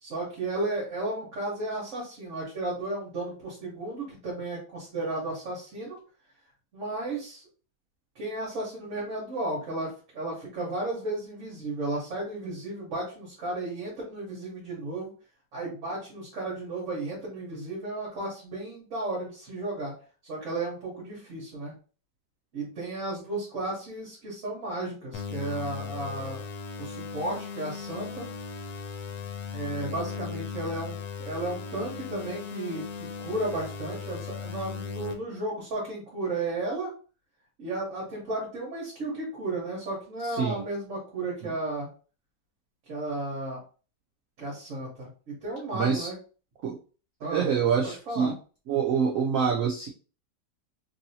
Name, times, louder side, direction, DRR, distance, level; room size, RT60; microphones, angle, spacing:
voice 1, 0.0-6.0 6.7-7.4 8.1-15.1 15.5-19.9 20.2-21.7 22.5-26.5 26.8-28.3 29.5-32.9 33.2-36.9 37.6-41.9 42.9-43.6 44.4-46.1 47.2-47.5 48.1-48.3, right 2 dB, 50° right, -4 dB, 1.3 m, -34 dB
sound 1, 25.1-35.1, left 6 dB, 80° left, 1.3 m, -37 dB
voice 2, 40.2-40.6 41.4-41.5 45.7-46.1 46.6-46.8 47.2-48.3 48.7-49.9, right 6 dB, 80° right, 1 dB, 0.7 m, -26 dB
3.1 x 2.7 x 2.7 m, 0.37 s
omnidirectional pair, 1.9 m